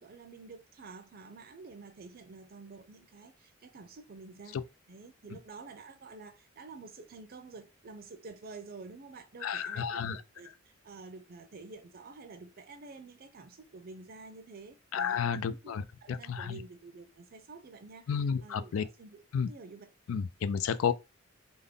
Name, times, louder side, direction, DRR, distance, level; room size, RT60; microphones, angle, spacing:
voice 1, 0.0-4.6 4.9-10.5 10.8-15.8 16.0-18.1 18.4-19.9, right 3 dB, 50° right, 0.5 m, -49 dB
voice 2, 9.4-10.2 14.9-16.6 18.1-18.8 19.3-19.5 20.1-20.9, left 7 dB, 90° left, 0.4 m, -31 dB
3.5 x 2.1 x 3.6 m
head